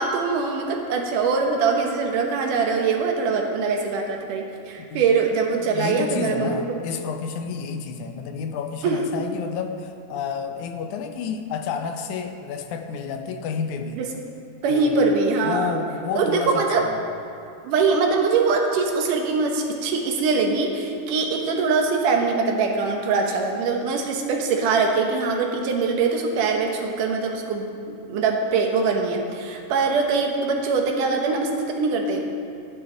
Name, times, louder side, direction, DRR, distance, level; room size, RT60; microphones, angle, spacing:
voice 1, 0.0-6.6 8.8-9.0 14.0-14.1 14.6-15.7 16.1-16.8 17.6-32.2, right 4 dB, 85° right, 2 dB, 2.7 m, -23 dB
voice 2, 5.6-14.0 14.7-15.0 15.4-17.0, left 6 dB, 80° left, 6 dB, 2.0 m, -30 dB
13.5 x 10.5 x 3.8 m, 2.6 s
omnidirectional pair, 3.6 m